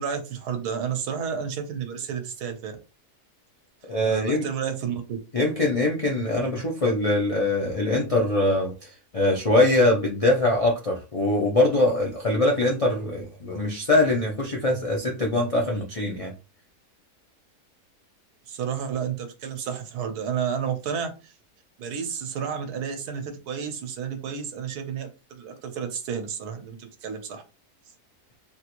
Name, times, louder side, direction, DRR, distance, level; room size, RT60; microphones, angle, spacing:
voice 1, 0.0-2.7 4.0-5.2 18.5-21.3 21.8-27.4, right 7 dB, 85° right, 6 dB, 1.3 m, -31 dB
voice 2, 3.9-4.5 5.3-16.3, left 1 dB, 60° left, -1 dB, 0.3 m, -23 dB
3.5 x 2.5 x 2.9 m, 0.31 s
omnidirectional pair, 1.6 m